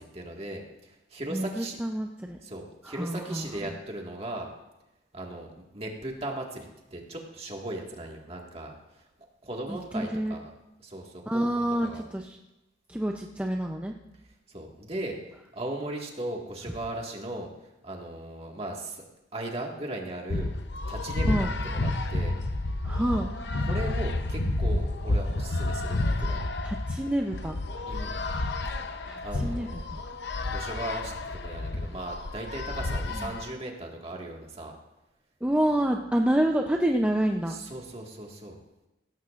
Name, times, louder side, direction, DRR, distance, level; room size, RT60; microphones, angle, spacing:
voice 1, 0.0-1.8 2.4-4.5 5.1-9.0 9.4-10.5 10.8-12.0 14.5-15.2 15.5-17.5 17.8-19.0 19.3-20.5 20.9-22.3 23.6-26.5 27.9-28.2 29.2-29.8 30.4-34.8 37.5-38.6, right 1 dB, 35° right, 0 dB, 1.8 m, -38 dB
voice 2, 1.3-2.4 2.8-3.5 9.7-10.3 11.3-12.4 12.9-13.9 21.3-21.5 22.8-23.3 26.6-27.6 29.1-30.0 33.1-33.3 35.4-37.5, right 1 dB, 5° right, 2 dB, 0.5 m, -28 dB
sound 1, 20.3-33.5, left 2 dB, 65° left, 0.8 m, -30 dB
17.0 x 13.5 x 2.5 m, 0.97 s
head